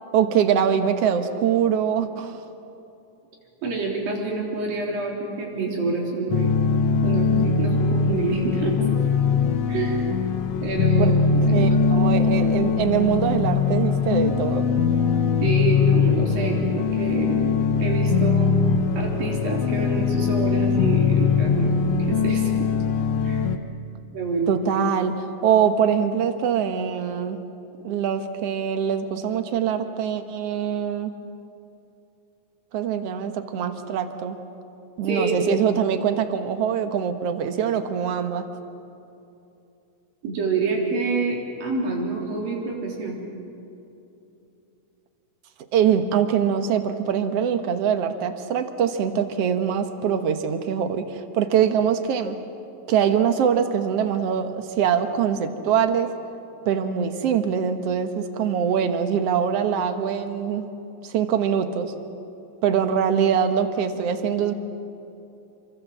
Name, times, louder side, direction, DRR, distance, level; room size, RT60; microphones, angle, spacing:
voice 1, 0.1-2.4 11.0-11.1 11.5-14.7 24.5-27.4 27.8-31.1 32.7-34.4 35.0-38.5 45.7-52.4 52.9-56.1 56.7-60.7 61.0-61.9 62.6-64.5, right 8 dB, 55° right, 8 dB, 1.9 m, -23 dB
voice 2, 3.6-6.6 7.0-8.8 9.7-10.0 10.6-12.5 15.4-17.5 17.8-18.5 19.0-21.7 22.0-22.7 23.2-23.5 24.1-24.5 35.1-35.4 40.2-43.2, right 3 dB, 85° right, -1 dB, 5.5 m, -27 dB
sound 1, 6.3-23.6, left 5 dB, 65° left, 1.8 m, -21 dB
27.5 x 24.0 x 7.4 m, 2.8 s
omnidirectional pair, 3.9 m